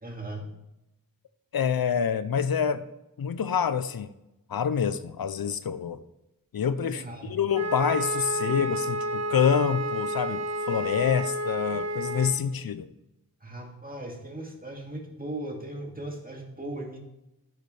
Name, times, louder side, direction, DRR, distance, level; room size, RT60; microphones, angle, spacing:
voice 1, 0.0-0.5 6.8-7.4 13.4-17.0, right 1 dB, 25° right, 1 dB, 2.1 m, -38 dB
voice 2, 1.5-2.9 3.2-4.1 4.5-6.0 6.5-7.0 7.3-12.9, left 7 dB, 80° left, 13 dB, 0.6 m, -27 dB
Wind instrument woodwind instrument, 7.5-12.3, right 1 dB, 50° right, 1.5 m, -30 dB
10.5 x 7.9 x 3.3 m, 0.91 s
wide cardioid pair, 70°, 35 cm